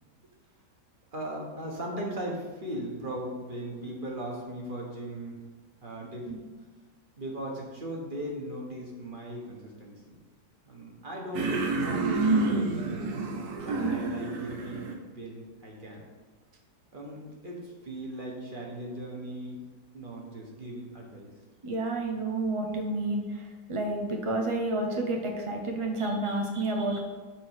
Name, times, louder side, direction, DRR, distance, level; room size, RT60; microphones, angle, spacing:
voice 1, 1.1-5.4 5.8-6.3 7.2-10.1 10.7-13.1 13.6-16.0 16.9-19.6 19.9-21.3, right 1 dB, 30° right, -1 dB, 1.5 m, -38 dB
sound 1, 11.3-14.9, right 3 dB, 75° right, 1.5 m, -28 dB
voice 2, 21.6-27.0, right 2 dB, 55° right, 1 dB, 0.3 m, -30 dB
6.2 x 4.5 x 6.5 m, 1.4 s
omnidirectional pair, 1.9 m